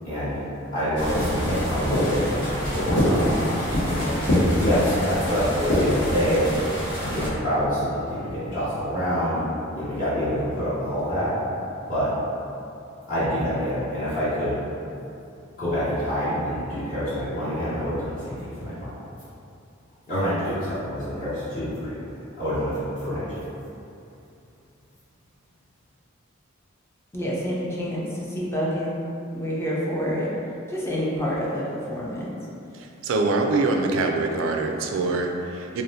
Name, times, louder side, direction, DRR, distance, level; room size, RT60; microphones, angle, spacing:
voice 1, 0.0-0.4 0.7-2.3 2.7-6.4 7.0-9.4 9.7-11.3 11.9-12.1 13.1-14.6 15.6-18.9 20.1-22.0 22.4-23.4, equal, 45° left, -15 dB, 1.4 m, -26 dB
sound 1, 0.9-7.3, equal, 65° left, 1.1 m, -24 dB
voice 2, 27.1-29.0 29.3-30.3 30.7-32.3, equal, 15° left, -6 dB, 0.5 m, -28 dB
voice 3, 33.0-35.8, right 3 dB, 75° right, 2 dB, 0.3 m, -24 dB
3.3 x 2.5 x 2.6 m, 2.6 s
head